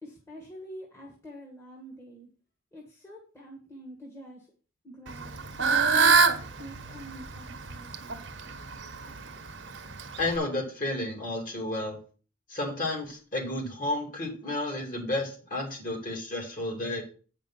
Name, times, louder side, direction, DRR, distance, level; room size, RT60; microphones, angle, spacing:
voice 1, 0.0-2.3 2.7-4.5 4.8-6.2 6.6-8.3, left 1 dB, 15° left, -2 dB, 1.5 m, -45 dB
Fowl / Bird, 5.1-10.4, right 5 dB, 55° right, 1.0 m, -26 dB
voice 2, 10.2-12.0 12.5-17.0, left 2 dB, 40° left, 0 dB, 2.9 m, -31 dB
8.8 x 5.1 x 5.6 m, 0.39 s
head